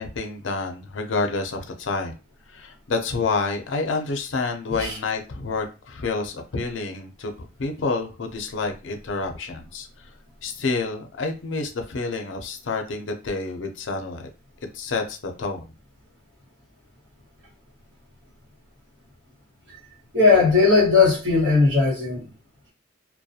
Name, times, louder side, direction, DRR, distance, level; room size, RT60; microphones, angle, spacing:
voice 1, 0.0-2.1 2.5-7.3 7.6-9.9 10.4-14.2 14.7-15.7, left 3 dB, 75° left, 0.5 m, -28 dB
voice 2, 20.1-22.3, left 4 dB, 60° right, 1.2 m, -17 dB
2.3 x 2.1 x 2.7 m
head